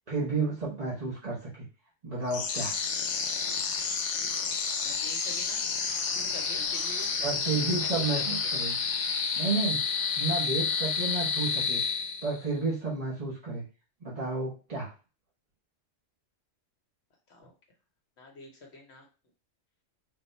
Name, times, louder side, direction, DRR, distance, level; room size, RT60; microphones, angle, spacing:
voice 1, 0.1-1.6 2.0-2.8 7.2-8.8 9.4-9.8 10.2-11.8 12.2-13.6 14.0-14.9, right 3 dB, 35° right, -7 dB, 1.0 m, -31 dB
sound 1, 2.3-12.5, left 5 dB, 80° left, 0.4 m, -30 dB
voice 2, 4.8-5.7 6.2-7.3 7.8-8.5 17.3-17.5 18.2-19.1, left 2 dB, 60° left, 1 dB, 1.0 m, -47 dB
3.7 x 2.2 x 4.0 m, 0.33 s
omnidirectional pair, 1.3 m